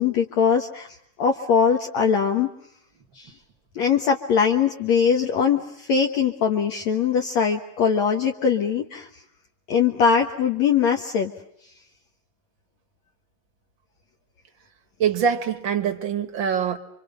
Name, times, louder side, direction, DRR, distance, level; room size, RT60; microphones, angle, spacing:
voice 1, 0.0-2.5 3.2-3.3 3.7-9.1 9.7-11.3, left 6 dB, 60° left, 2.5 m, -21 dB
voice 2, 15.0-16.8, right 7 dB, 45° right, 1.7 m, -24 dB
29.5 x 25.5 x 6.9 m
omnidirectional pair, 3.8 m